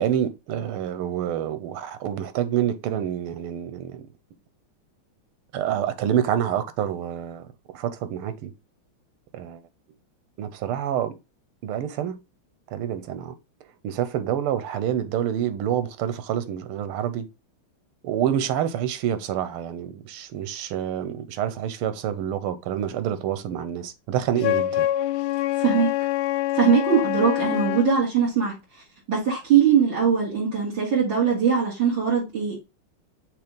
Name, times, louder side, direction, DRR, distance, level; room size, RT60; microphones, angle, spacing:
voice 1, 0.0-4.1 5.5-7.4 7.7-8.5 9.3-9.6 10.4-11.2 11.6-12.2 12.7-13.3 13.8-17.3 18.0-24.9, right 10 dB, 85° right, 1.7 m, -27 dB
Wind instrument woodwind instrument, 24.4-27.9, left 14 dB, 75° left, 1.2 m, -25 dB
voice 2, 25.6-25.9 26.5-28.8 29.1-32.6, right 7 dB, 65° right, 3.6 m, -21 dB
6.8 x 3.0 x 5.1 m
omnidirectional pair, 2.3 m